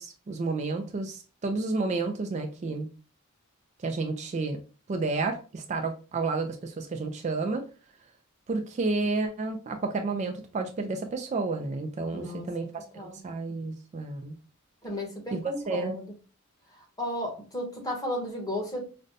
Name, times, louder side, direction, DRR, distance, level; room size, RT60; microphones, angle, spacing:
voice 1, 0.0-2.9 3.8-4.6 4.9-7.6 8.5-14.3 15.3-15.4 15.7-16.0, right 3 dB, 35° right, 4 dB, 0.4 m, -31 dB
voice 2, 12.1-12.5 12.9-13.2 14.8-16.1 16.8-18.9, left 1 dB, 20° left, 0 dB, 1.0 m, -34 dB
5.1 x 2.2 x 2.6 m, 0.35 s
head